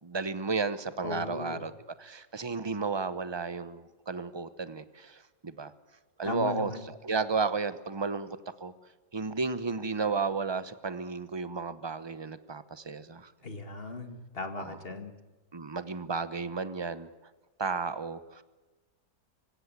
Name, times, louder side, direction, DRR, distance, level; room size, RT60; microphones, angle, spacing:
voice 1, 0.0-1.7 2.0-5.7 6.2-6.7 7.0-8.7 9.1-13.3 14.6-14.8 15.5-17.1 17.6-18.4, right 4 dB, 25° right, 13 dB, 0.6 m, -33 dB
voice 2, 1.0-1.7 6.2-6.8 13.4-15.1, left 3 dB, 35° left, 7 dB, 2.0 m, -37 dB
25.0 x 16.5 x 9.7 m, 1.2 s
omnidirectional pair, 1.8 m